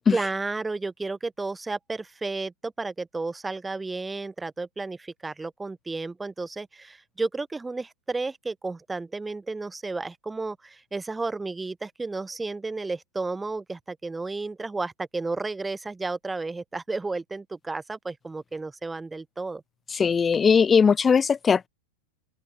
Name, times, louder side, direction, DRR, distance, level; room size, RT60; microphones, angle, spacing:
voice 1, 0.1-19.6, right 3 dB, 10° right, 1.4 m, -32 dB
voice 2, 19.9-21.7, left 6 dB, 20° left, 0.7 m, -19 dB
open air
figure-of-eight pair, 90°, 0 cm